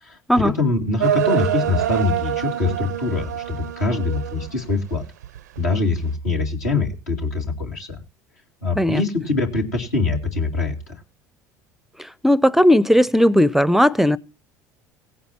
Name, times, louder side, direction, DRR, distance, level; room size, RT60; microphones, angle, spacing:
voice 1, 0.0-5.0 5.6-7.9 8.6-10.9, left 3 dB, 80° left, 2.4 m, -23 dB
sound 1, 1.0-4.8 5.2-5.7, right 12 dB, 80° right, 0.5 m, -25 dB
voice 2, 12.2-14.2, equal, 5° right, 0.5 m, -16 dB
18.0 x 9.3 x 2.8 m
figure-of-eight pair, 65°, 9 cm